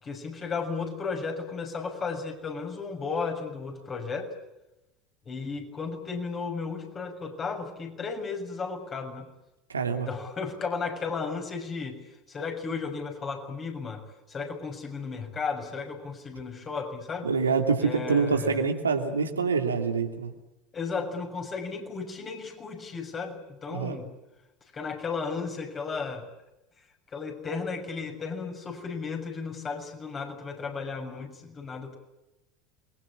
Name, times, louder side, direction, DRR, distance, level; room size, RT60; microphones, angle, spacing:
voice 1, 0.0-4.3 5.2-9.3 10.1-12.0 12.3-17.3 17.8-18.6 20.7-24.1 24.7-26.3 27.1-32.0, left 4 dB, 30° left, 3 dB, 6.8 m, -34 dB
voice 2, 9.7-10.1 17.2-20.3 23.7-24.0, right 5 dB, 80° right, 4 dB, 2.7 m, -26 dB
29.0 x 23.0 x 8.5 m, 0.97 s
figure-of-eight pair, 75°, 0 cm